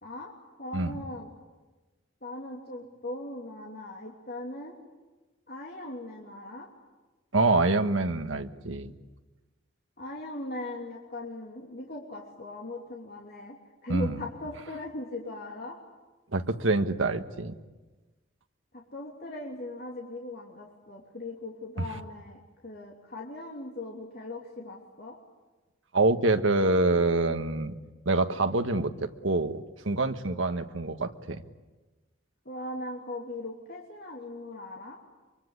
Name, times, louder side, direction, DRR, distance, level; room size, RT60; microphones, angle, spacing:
voice 1, 0.0-0.3 0.6-1.3 2.2-4.7 5.5-6.7 10.0-13.6 13.8-15.8 18.7-25.2 32.4-35.0, left 1 dB, 50° left, -1 dB, 3.0 m, -39 dB
voice 2, 7.3-8.9 13.9-14.2 16.3-17.5 21.8-21.9 25.9-27.7 28.0-31.4, right 2 dB, 80° right, 8 dB, 1.5 m, -26 dB
24.5 x 24.0 x 9.7 m, 1.2 s
head